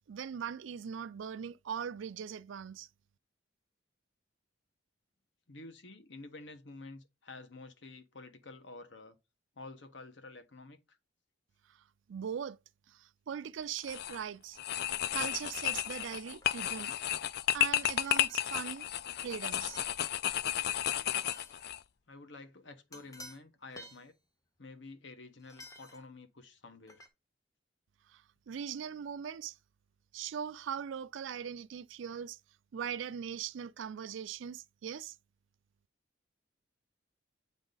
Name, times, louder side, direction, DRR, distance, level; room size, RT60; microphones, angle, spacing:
voice 1, 0.1-2.9 11.7-11.8 12.1-12.6 12.9-14.6 15.1-16.9 17.5-18.9 19.2-19.8 28.1-29.6 30.1-32.4 32.7-35.2, right 8 dB, 75° right, 0.4 m, -40 dB
voice 2, 5.5-9.2 9.6-11.0 22.1-24.1 24.6-27.0, left 3 dB, 70° left, 1.1 m, -50 dB
sound 1, 13.8-14.2 14.6-21.8, left 12 dB, 55° left, 0.3 m, -33 dB
sound 2, 16.4-16.7 17.9-18.4 19.2-19.4 19.7-20.0 21.2-21.7 22.9-23.4 23.7-24.1 25.4-26.0 26.9-27.1, left 1 dB, 15° left, 0.9 m, -53 dB
8.7 x 3.7 x 3.9 m
head